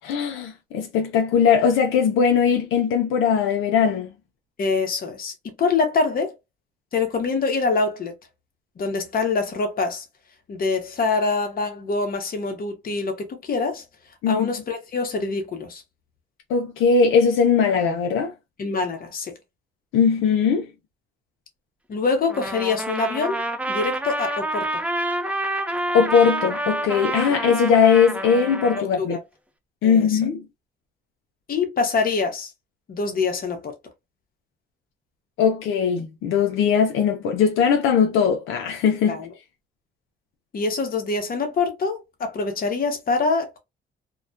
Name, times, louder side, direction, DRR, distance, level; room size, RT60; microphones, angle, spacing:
voice 1, 0.0-4.1 14.2-14.5 16.5-18.3 19.9-20.7 25.9-29.2 29.8-30.5 35.4-39.2, left 6 dB, 85° left, 0.5 m, -20 dB
voice 2, 4.6-6.3 6.9-8.1 8.8-10.0 10.5-13.8 14.3-15.8 18.6-19.4 21.9-23.4 23.7-24.8 29.0-29.2 29.8-30.2 31.5-32.5 32.9-33.7 39.1-39.3 40.5-43.6, left 4 dB, 45° left, 0.9 m, -25 dB
Trumpet, 22.3-28.8, right 1 dB, 5° right, 0.4 m, -28 dB
2.3 x 2.1 x 2.5 m
cardioid pair, 90°, 20 cm